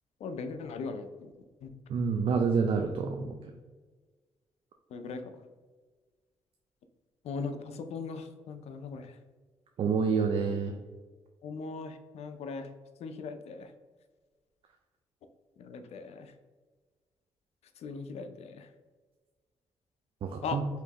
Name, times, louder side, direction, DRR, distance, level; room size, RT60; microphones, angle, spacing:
voice 1, 0.2-1.3 1.6-1.7 4.9-5.4 7.2-9.2 11.4-12.7 13.0-13.7 15.6-16.3 17.8-18.7 20.4-20.6, left 4 dB, 80° left, 8 dB, 0.5 m, -39 dB
voice 2, 1.9-3.4 9.8-10.7 20.2-20.7, right 5 dB, 60° right, 4 dB, 0.4 m, -28 dB
4.4 x 3.0 x 2.8 m, 1.4 s
cardioid pair, 90°, 11 cm